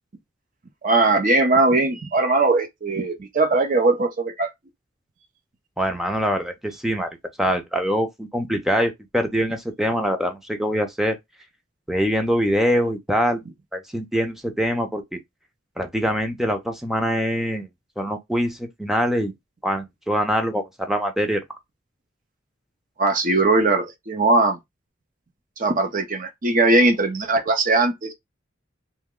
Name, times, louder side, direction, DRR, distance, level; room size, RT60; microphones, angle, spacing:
voice 1, 0.8-4.5 23.0-24.6 25.6-28.1, right 2 dB, 40° right, 0.6 m, -20 dB
voice 2, 5.8-11.2 11.9-13.4 13.7-15.2 15.8-17.7 18.0-19.3 19.6-21.4, equal, ahead, 0.5 m, -24 dB
2.9 x 2.2 x 3.6 m
head